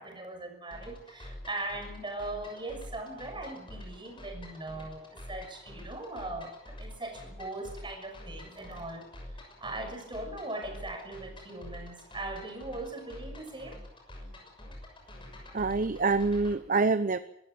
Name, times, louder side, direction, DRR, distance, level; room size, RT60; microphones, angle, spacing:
voice 1, 0.0-9.1 9.3-13.8, right 2 dB, 25° right, 5 dB, 6.0 m, -40 dB
sound 1, 0.7-16.6, left 1 dB, 25° left, 6.4 m, -47 dB
voice 2, 15.5-17.2, right 3 dB, 45° right, 12 dB, 0.8 m, -26 dB
24.0 x 14.5 x 9.6 m, 0.81 s
head